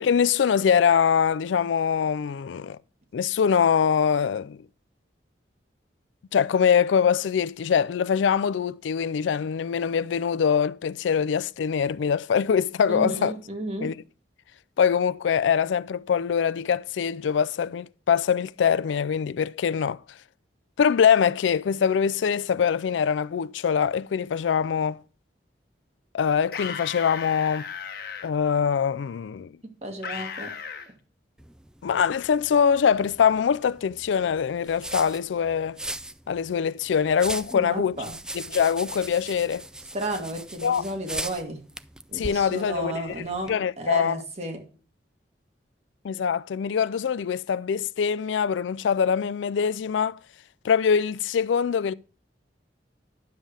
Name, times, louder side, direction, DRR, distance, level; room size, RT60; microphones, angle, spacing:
voice 1, 0.0-2.8 3.1-4.6 6.3-13.3 13.8-13.9 14.8-20.0 20.8-25.0 26.1-27.6 28.2-29.5 31.8-35.8 36.3-38.0 38.3-39.6 40.6-40.8 42.1-43.1 43.5-44.2 46.0-50.2 50.6-51.9, left 7 dB, 85° left, 0.4 m, -23 dB
voice 2, 12.9-13.9 29.8-30.5 37.5-38.2 39.9-41.6 42.1-44.6, right 1 dB, 35° right, 1.8 m, -32 dB
sound 1, 26.5-28.3 30.0-30.9, left 6 dB, 55° left, 1.2 m, -36 dB
sound 2, 31.4-43.5, right 1 dB, 5° right, 0.3 m, -40 dB
10.5 x 7.4 x 3.3 m
head